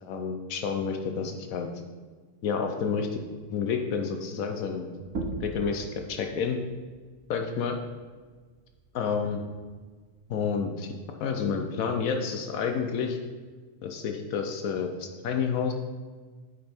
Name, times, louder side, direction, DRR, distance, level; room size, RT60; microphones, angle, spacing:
voice 1, 0.0-1.7 2.4-3.1 3.5-4.9 5.4-6.6 7.3-7.7 8.9-9.4 10.3-10.9 11.2-13.2 13.8-15.7, left 6 dB, 85° left, 4 dB, 1.2 m, -29 dB
sound 1, 5.0-10.2, right 2 dB, 90° right, 1.4 m, -41 dB
9.3 x 5.3 x 4.4 m, 1.4 s
omnidirectional pair, 1.4 m